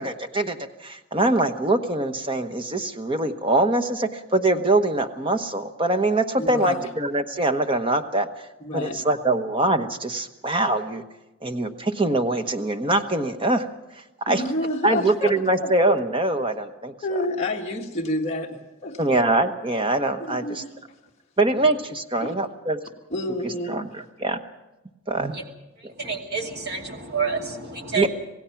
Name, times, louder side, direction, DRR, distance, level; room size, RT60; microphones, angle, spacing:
voice 1, 0.0-8.3 8.7-11.0 11.4-13.7 14.3-14.4 14.8-16.9 19.0-20.6 21.4-22.8 23.4-24.4 25.1-25.3 25.8-25.9 27.9-28.1, right 2 dB, 25° right, 7 dB, 1.1 m, -23 dB
voice 2, 6.4-6.9 8.6-9.0 14.3-15.3 15.6-15.7 17.0-19.0 20.2-20.7 22.2-22.3 23.1-23.9, left 1 dB, 30° left, -2 dB, 1.7 m, -29 dB
voice 3, 26.0-28.1, right 5 dB, 50° right, 2 dB, 2.5 m, -28 dB
27.0 x 17.0 x 5.9 m, 1.0 s
head